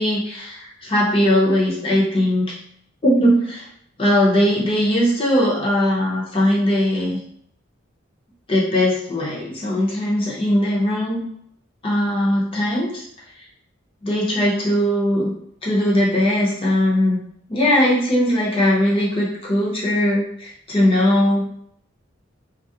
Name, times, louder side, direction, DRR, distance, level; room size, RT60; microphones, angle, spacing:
voice 1, 0.0-2.6 3.0-3.7 4.0-7.2 8.5-11.2 11.8-13.0 14.0-15.3 15.6-17.2 17.5-21.6, left 1 dB, 25° left, -4 dB, 0.6 m, -19 dB
2.3 x 2.0 x 2.6 m, 0.69 s
head